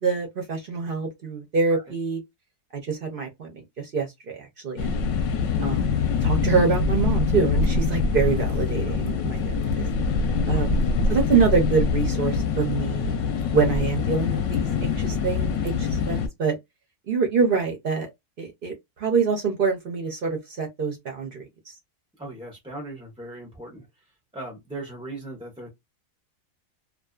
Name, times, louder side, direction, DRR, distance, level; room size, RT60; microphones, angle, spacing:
voice 1, 0.0-2.2 2.7-5.0 5.6-9.9 10.5-10.8 11.1-13.2 13.5-16.6 17.1-18.1 18.4-21.7, right 5 dB, 60° right, 0.6 m, -25 dB
sound 1, 4.8-16.3, left 4 dB, 65° left, 0.8 m, -24 dB
voice 2, 5.3-5.6 10.5-10.6 22.2-23.8 24.3-25.7, right 2 dB, 10° right, 0.3 m, -38 dB
2.6 x 2.4 x 2.3 m
omnidirectional pair, 1.7 m